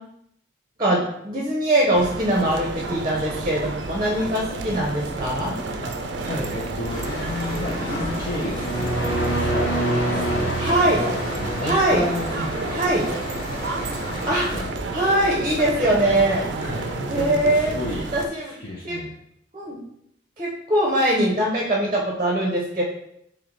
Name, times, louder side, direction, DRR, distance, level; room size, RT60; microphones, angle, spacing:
voice 1, 0.8-5.5 10.6-11.0 11.6-12.0 12.7-13.0 14.2-14.5 14.9-16.5 17.1-17.7 18.1-18.5 18.8-19.0 19.5-19.8 20.4-22.8, right 1 dB, 25° right, -2 dB, 0.6 m, -22 dB
sound 1, 1.9-18.3, right 3 dB, 75° right, 0.4 m, -31 dB
voice 2, 5.8-9.8 10.1-12.8 14.5-14.7 15.0-15.2 16.6-19.1, left 1 dB, 50° left, -5 dB, 0.6 m, -32 dB
sound 2, 6.9-14.6, left 1 dB, 30° left, 1.0 m, -33 dB
sound 3, 8.4-12.7, right 1 dB, 65° left, 1.3 m, -26 dB
3.2 x 3.0 x 3.8 m, 0.75 s
head